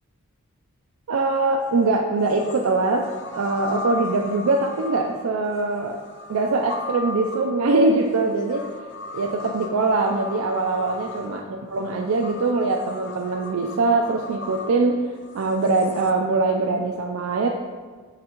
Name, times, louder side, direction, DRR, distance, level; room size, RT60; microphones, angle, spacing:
voice 1, 1.1-6.0 6.3-8.7 9.1-15.1 15.3-17.5, right 3 dB, 80° right, 1 dB, 0.4 m, -22 dB
sound 1, 1.6-1.7 2.3-16.1, left 3 dB, 55° left, 0.5 m, -38 dB
6.3 x 3.9 x 4.4 m, 1.5 s
head